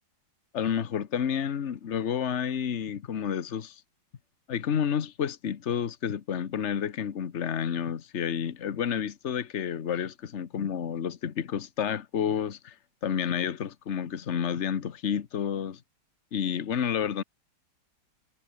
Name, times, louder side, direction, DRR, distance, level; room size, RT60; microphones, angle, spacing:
voice 1, 0.5-3.8 4.5-12.7 13.0-15.8 16.3-17.2, left 8 dB, 40° left, 1.2 m, -30 dB
omnidirectional pair, 2.2 m